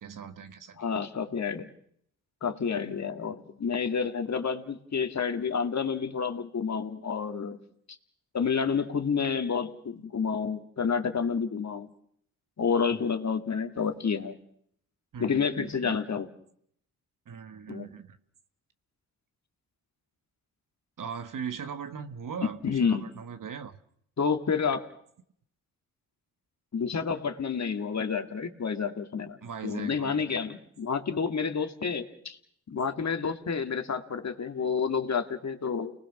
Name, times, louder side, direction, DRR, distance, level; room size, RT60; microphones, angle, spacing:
voice 1, 0.0-0.8 15.1-16.0 17.3-18.2 21.0-23.8 29.4-30.4, right 7 dB, 55° right, 1.4 m, -39 dB
voice 2, 0.8-1.7 2.4-7.6 8.3-11.9 12.6-14.4 15.2-16.3 17.7-17.9 22.6-23.1 24.2-24.8 26.7-32.4 32.7-35.9, left 6 dB, 45° left, 2.4 m, -29 dB
30.0 x 20.0 x 6.1 m
cardioid pair, 65°, 38 cm